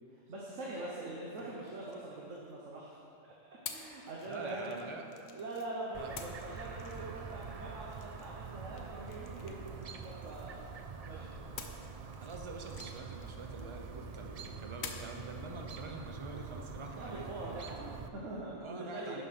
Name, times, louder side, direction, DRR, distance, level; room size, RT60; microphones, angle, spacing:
voice 1, 0.3-3.0 3.4-4.7 5.3-10.6 11.0-11.4 17.0-19.2, right 2 dB, 80° right, -4 dB, 1.4 m, -43 dB
sound 1, 1.3-2.8 3.6-5.7 6.2-10.8 11.6-14.1 14.8-15.3, left 6 dB, 65° left, 1.0 m, -50 dB
voice 2, 4.2-5.0 6.0-6.1 11.0-11.4 12.2-17.6 18.6-19.2, right 3 dB, 30° right, 3 dB, 0.7 m, -46 dB
Chirp tweet, 5.9-18.1, right 5 dB, 65° right, 0.4 m, -45 dB
9.7 x 6.0 x 5.9 m, 2.6 s
omnidirectional pair, 1.3 m